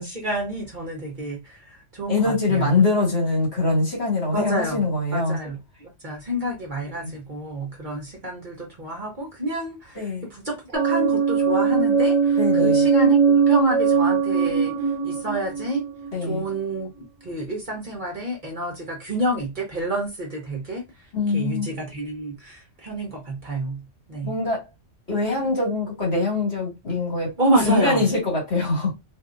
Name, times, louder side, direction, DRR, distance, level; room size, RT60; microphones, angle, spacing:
voice 1, 0.0-1.4 1.9-2.7 4.3-4.8 5.1-5.6 6.0-9.8 10.3-12.1 12.6-14.7 15.0-15.9 16.2-16.9 17.2-20.8 21.3-23.8 24.1-24.3 27.4-28.0, right 1 dB, 45° right, 1.0 m, -28 dB
voice 2, 2.1-5.4 6.9-7.1 9.9-10.3 12.4-12.9 16.1-16.4 21.1-21.7 24.2-24.6 25.1-27.3 27.6-28.9, left 3 dB, 55° left, 2.2 m, -23 dB
sound 1, 10.7-16.5, right 5 dB, 70° right, 1.0 m, -20 dB
3.5 x 2.6 x 2.5 m
omnidirectional pair, 1.3 m